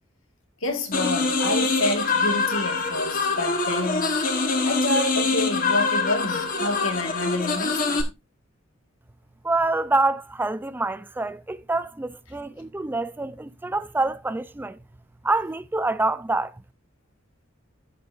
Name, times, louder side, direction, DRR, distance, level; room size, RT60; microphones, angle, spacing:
voice 1, 0.6-4.2 4.6-8.1, left 2 dB, 90° left, 1.8 m, -28 dB
sound 1, 0.9-8.0, left 3 dB, 45° left, 1.3 m, -24 dB
voice 2, 9.4-14.8 15.2-16.6, right 2 dB, 10° right, 0.4 m, -26 dB
13.5 x 5.5 x 2.5 m
head